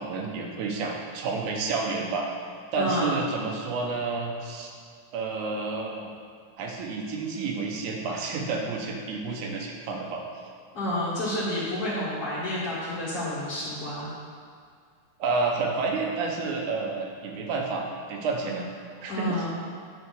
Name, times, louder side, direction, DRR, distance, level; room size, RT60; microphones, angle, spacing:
voice 1, 0.0-2.3 2.7-4.7 5.1-6.1 6.6-10.2 15.2-17.8 18.1-18.7 19.0-19.5, right 4 dB, 75° right, 0 dB, 2.3 m, -30 dB
voice 2, 2.7-3.1 10.7-14.1 18.4-18.6 19.1-19.5, left 1 dB, 50° left, -8 dB, 2.3 m, -30 dB
9.2 x 3.7 x 6.9 m, 2.2 s
omnidirectional pair, 3.7 m